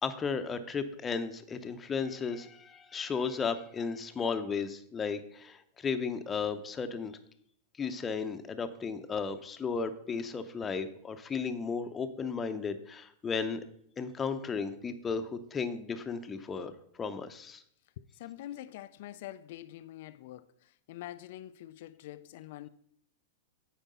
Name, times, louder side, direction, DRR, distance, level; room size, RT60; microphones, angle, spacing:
voice 1, 0.0-7.2 7.8-13.6 14.0-17.6, left 5 dB, 20° left, 0.7 m, -34 dB
voice 2, 18.0-22.7, left 13 dB, 60° left, 0.3 m, -45 dB
9.0 x 4.6 x 5.4 m
hypercardioid pair, 115°, 0 cm